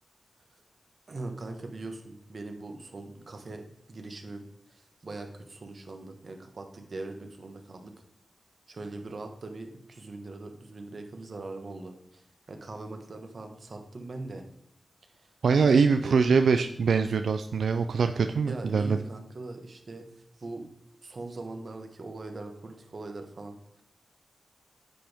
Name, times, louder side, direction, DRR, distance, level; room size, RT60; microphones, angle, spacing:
voice 1, 1.1-7.9 8.7-14.4 15.6-16.2 18.5-20.1 20.4-20.7 21.0-23.8, right 2 dB, 55° right, 5 dB, 1.5 m, -41 dB
voice 2, 15.4-19.0, right 5 dB, 90° right, 8 dB, 0.4 m, -23 dB
10.0 x 7.8 x 3.5 m, 0.77 s
wide cardioid pair, 85°, 0 cm